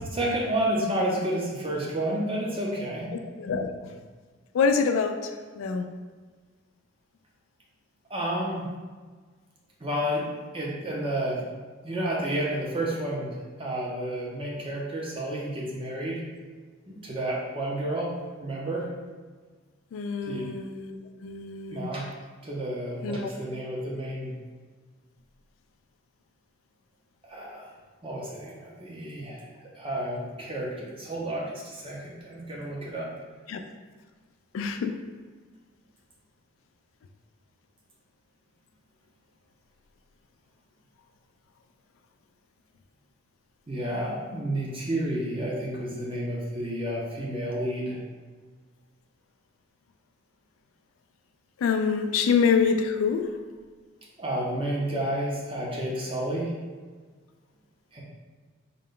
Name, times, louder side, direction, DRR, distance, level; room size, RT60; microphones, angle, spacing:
voice 1, 0.1-3.1 8.1-8.7 9.8-10.3 10.5-11.4 11.8-16.2 16.9-18.1 18.4-18.9 20.3-20.5 21.7-22.1 22.4-24.3 27.2-27.7 28.0-33.1 43.7-48.0 54.2-56.5 57.9-58.0, right 1 dB, 25° right, -3 dB, 0.7 m, -30 dB
voice 2, 3.4-3.7 4.5-5.9 19.9-21.0 21.2-21.9 23.0-23.3 33.5-33.6 34.5-35.0 51.6-53.3, left 5 dB, 85° left, 7 dB, 0.3 m, -25 dB
3.8 x 2.2 x 3.7 m, 1.5 s
head